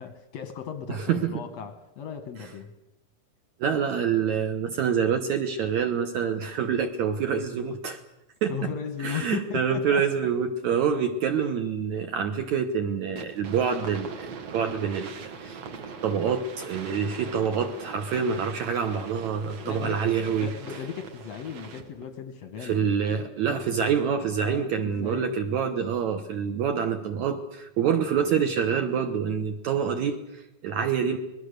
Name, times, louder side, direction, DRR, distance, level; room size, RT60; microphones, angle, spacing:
voice 1, 0.0-2.7 8.5-10.0 19.6-20.0 20.4-23.2 24.4-25.4, left 7 dB, 65° left, 8 dB, 1.7 m, -36 dB
voice 2, 0.9-1.4 3.6-8.0 8.4-8.6 9.0-15.6 16.0-20.5 22.6-31.2, right 7 dB, 70° right, 6 dB, 1.9 m, -26 dB
sound 1, 13.2-22.1, right 5 dB, 50° right, 2.2 m, -41 dB
26.0 x 20.5 x 6.6 m, 0.94 s
omnidirectional pair, 4.6 m